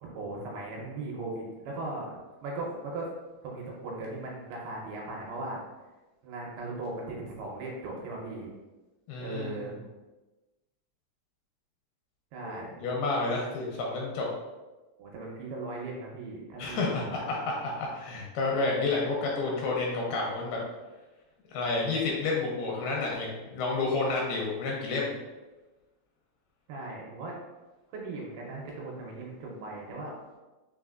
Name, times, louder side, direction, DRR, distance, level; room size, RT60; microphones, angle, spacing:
voice 1, 0.0-3.1 3.4-5.6 6.2-8.5 9.2-9.7 12.3-12.8 15.0-17.3 26.7-27.4 27.9-30.1, right 2 dB, 80° right, -3 dB, 2.5 m, -38 dB
voice 2, 9.1-9.8 12.4-14.3 16.6-20.6 21.5-25.2, left 3 dB, 80° left, -2 dB, 2.4 m, -30 dB
6.2 x 2.6 x 2.4 m, 1.1 s
omnidirectional pair, 4.8 m